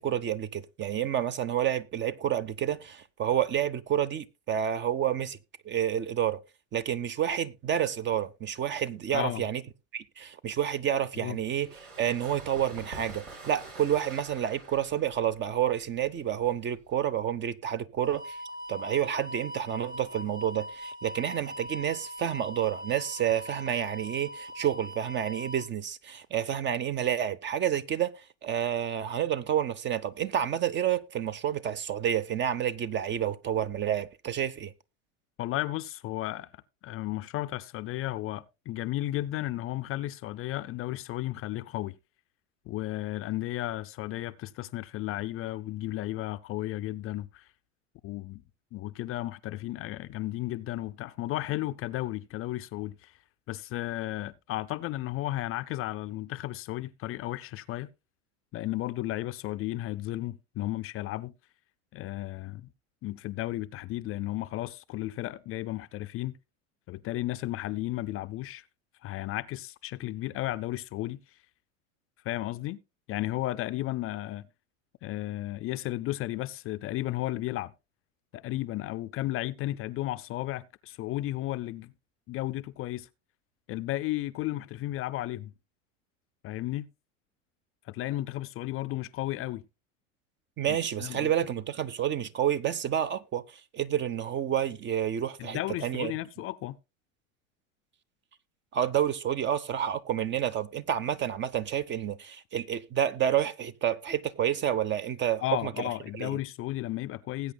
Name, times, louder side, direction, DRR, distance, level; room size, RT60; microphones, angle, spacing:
voice 1, 0.0-5.4 5.6-6.4 6.7-9.6 9.9-11.7 12.0-18.4 18.7-34.7 90.6-96.1 98.7-105.9 106.2-106.3, right 10 dB, 30° right, 0.6 m, -29 dB
voice 2, 9.1-9.4 11.2-11.4 35.4-36.5 36.8-41.9 42.7-47.5 48.0-48.4 48.7-53.1 53.5-57.9 58.5-61.3 61.9-62.7 63.0-66.3 66.9-68.6 69.0-71.2 72.2-72.8 73.1-74.5 75.0-77.7 78.3-81.9 82.3-83.1 83.7-85.5 86.4-86.9 87.9-89.6 90.7-91.3 95.4-96.8 105.4-107.5, left 16 dB, 35° left, 0.5 m, -34 dB
sound 1, 11.4-16.9, right 3 dB, 80° right, 5.6 m, -46 dB
sound 2, 18.0-25.7, equal, 10° right, 1.0 m, -41 dB
19.5 x 8.6 x 2.2 m
hypercardioid pair, 100°, 39 cm